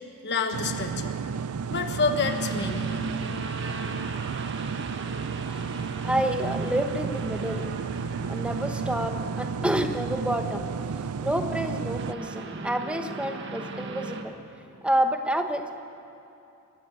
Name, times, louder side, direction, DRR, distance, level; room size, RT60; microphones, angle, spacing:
voice 1, 0.2-1.1 1.7-2.9, left 4 dB, 50° left, 6 dB, 1.2 m, -28 dB
sound 1, 0.5-12.1, right 6 dB, 75° right, 0.4 m, -32 dB
sound 2, 2.2-14.2, right 3 dB, 55° right, 1.5 m, -37 dB
voice 2, 6.0-7.7 8.3-10.6 11.2-14.4 14.8-15.8, right 1 dB, 5° right, 6 dB, 1.0 m, -28 dB
22.5 x 13.5 x 9.0 m, 2.7 s
head